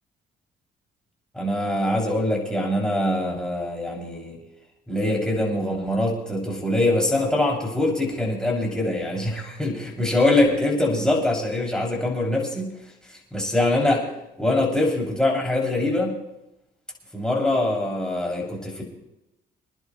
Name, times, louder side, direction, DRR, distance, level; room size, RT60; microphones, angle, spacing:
voice 1, 1.3-4.4 4.9-12.7 13.3-14.0 14.4-16.1 17.1-18.8, left 1 dB, 5° left, -2 dB, 6.4 m, -23 dB
27.5 x 11.0 x 3.1 m, 0.90 s
cardioid pair, 90°, 20 cm